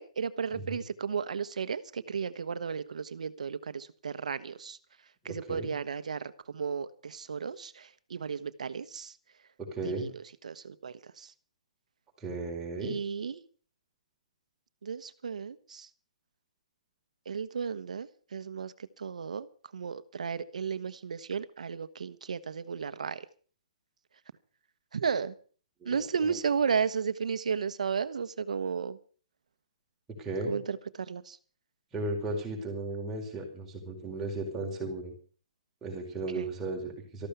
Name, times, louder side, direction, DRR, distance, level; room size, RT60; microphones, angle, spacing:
voice 1, 0.0-4.8 5.2-9.1 9.8-11.3 12.8-13.4 14.8-15.9 17.2-19.5 19.7-23.2 24.9-25.3 25.8-29.0 30.5-31.4 36.3-36.5, right 6 dB, 85° right, 13 dB, 1.2 m, -34 dB
voice 2, 5.3-5.7 9.6-10.1 12.2-12.9 25.8-26.4 30.2-30.5 31.9-35.1 35.8-37.3, right 2 dB, 10° right, -1 dB, 4.6 m, -35 dB
14.0 x 12.5 x 6.7 m, 0.42 s
hypercardioid pair, 160°, 4 cm